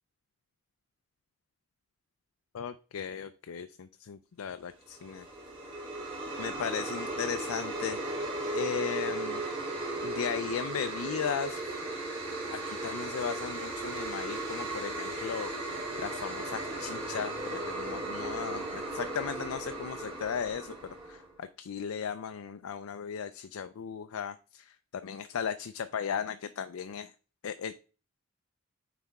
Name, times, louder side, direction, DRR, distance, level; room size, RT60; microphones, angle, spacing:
voice 1, 2.5-5.3 6.4-8.0 8.5-9.4 10.0-11.6 12.5-27.1 27.4-27.7, left 7 dB, 85° left, 10 dB, 0.4 m, -36 dB
sound 1, 4.9-21.3, right 2 dB, 25° right, 3.3 m, -36 dB
9.4 x 4.2 x 3.5 m, 0.37 s
head